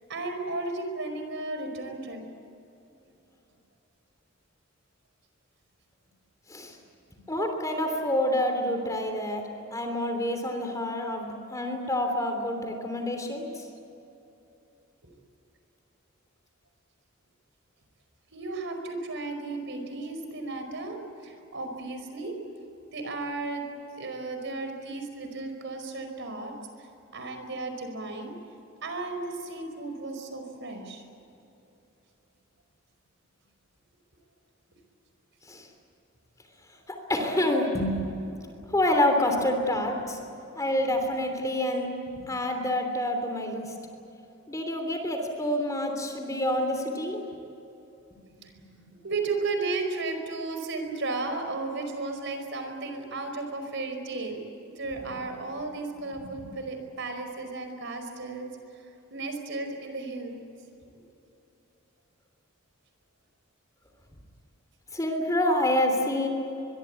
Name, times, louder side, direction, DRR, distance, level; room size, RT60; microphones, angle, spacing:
voice 1, 0.1-2.2 18.3-22.3 22.9-23.6 23.9-26.5 26.8-28.3 28.8-31.0 48.4-48.5 49.0-54.4 54.8-58.5 58.7-58.8 59.1-60.4, right 3 dB, 60° right, 6 dB, 5.0 m, -34 dB
voice 2, 7.3-9.4 9.7-13.7 35.4-35.7 36.9-38.3 38.6-40.2 40.5-41.9 42.1-43.7 44.5-47.2 56.1-56.5 64.9-66.3, left 1 dB, 15° left, 4 dB, 3.1 m, -27 dB
23.5 x 23.0 x 8.4 m, 2.9 s
head